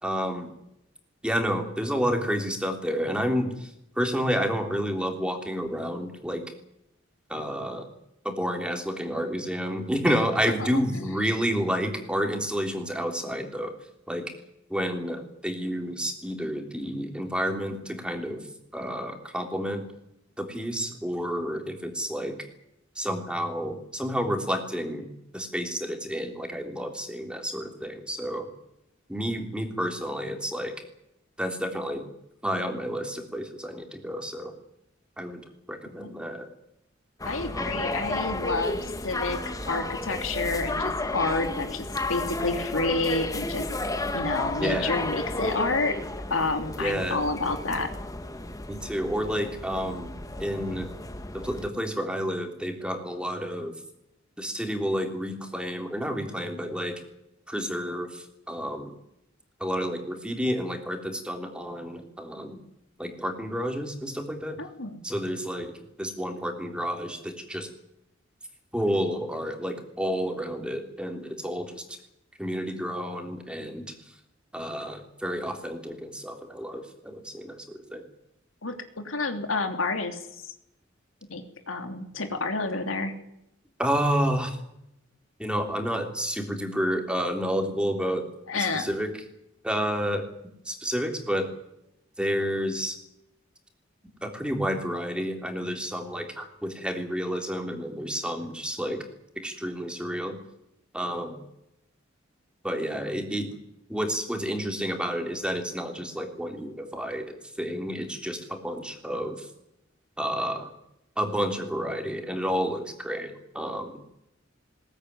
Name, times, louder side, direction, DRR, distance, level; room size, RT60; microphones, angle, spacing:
voice 1, 0.0-0.5 1.2-3.7 4.0-6.4 7.3-7.9 8.2-13.7 14.1-14.3 14.7-18.4 18.7-19.8 20.4-22.4 23.0-25.1 25.3-28.5 29.1-30.7 31.4-32.0 32.4-34.5 35.2-35.4 35.7-36.5 37.5-38.0 44.6-45.0 46.8-47.2 48.7-50.1 50.4-50.9 51.3-53.7 54.4-56.9 57.5-58.9 59.6-62.6 63.0-64.6 65.0-67.7 68.7-71.8 72.4-73.9 74.5-78.0 83.8-84.6 85.4-88.3 88.5-89.1 89.6-90.3 90.7-91.5 92.2-93.0 94.2-99.0 99.4-100.4 100.9-101.4 102.6-103.5 103.9-107.3 107.6-109.5 110.2-110.7 111.2-113.9, equal, 5° right, 3 dB, 3.4 m, -30 dB
voice 2, 35.9-36.4 37.2-39.4 39.6-43.6 44.1-46.0 46.3-47.9 64.6-65.0 78.6-80.3 81.3-83.1 88.5-88.9, left 3 dB, 85° left, 6 dB, 3.1 m, -29 dB
sound 1, 37.2-51.7, left 2 dB, 15° left, 1.3 m, -33 dB
21.0 x 18.5 x 9.7 m, 0.82 s
head